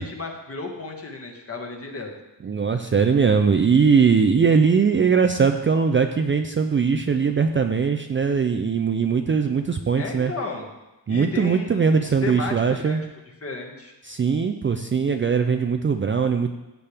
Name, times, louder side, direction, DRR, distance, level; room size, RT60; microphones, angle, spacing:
voice 1, 0.0-2.1 10.0-10.7 11.1-13.0 13.4-13.9, left 3 dB, 35° left, 1 dB, 1.7 m, -33 dB
voice 2, 2.4-10.3 11.1-13.0 14.0-16.5, right 5 dB, 30° right, 6 dB, 0.5 m, -20 dB
15.5 x 8.4 x 3.5 m, 1.0 s
wide cardioid pair, 180°, 41 cm